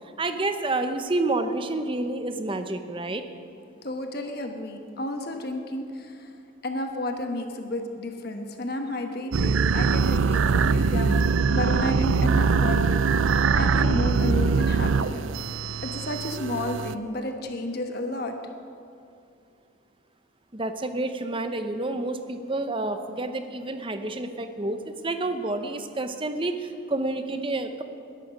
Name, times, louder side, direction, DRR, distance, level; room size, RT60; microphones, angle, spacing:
voice 1, 0.2-3.2 20.5-27.8, right 2 dB, 25° right, 8 dB, 0.8 m, -29 dB
voice 2, 3.8-6.3 6.6-13.0 13.5-15.3 15.8-18.3, left 1 dB, 50° left, 5 dB, 1.1 m, -32 dB
sound 1, 9.3-16.9, right 5 dB, 85° right, 0.5 m, -22 dB
20.5 x 11.5 x 5.2 m, 2.5 s
head